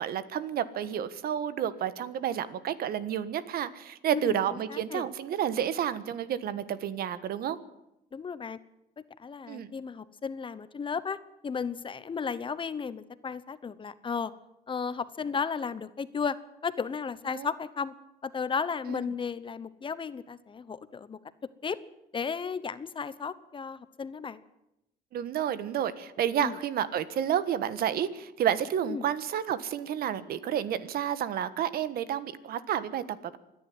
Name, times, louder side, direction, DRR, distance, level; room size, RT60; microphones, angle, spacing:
voice 1, 0.0-7.6 9.5-9.7 17.3-17.5 18.9-19.0 25.1-33.4, right 9 dB, 65° right, 14 dB, 1.5 m, -30 dB
voice 2, 4.1-5.1 8.1-8.6 9.2-11.2 11.4-14.3 14.7-16.4 16.6-17.9 18.2-21.2 21.6-21.8 22.1-24.4 26.4-26.5 28.8-29.1, left 6 dB, 30° left, 15 dB, 1.0 m, -34 dB
26.0 x 10.5 x 9.5 m, 0.88 s
cardioid pair, 110°, 17 cm